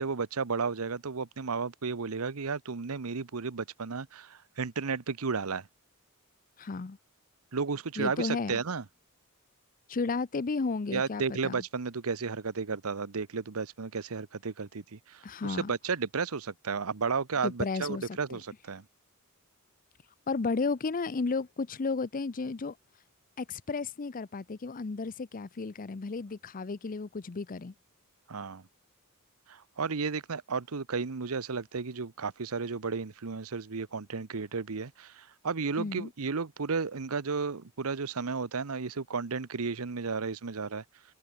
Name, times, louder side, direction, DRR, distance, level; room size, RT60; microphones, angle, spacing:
voice 1, 0.0-5.7 7.5-8.8 10.9-18.8 28.3-28.6 29.5-40.8, right 5 dB, 75° right, 0.9 m, -33 dB
voice 2, 6.6-7.0 8.0-8.6 9.9-11.6 15.2-15.7 17.4-18.0 18.3-18.4 20.3-22.8 23.4-27.7 35.8-36.1, left 4 dB, 40° left, 0.6 m, -33 dB
head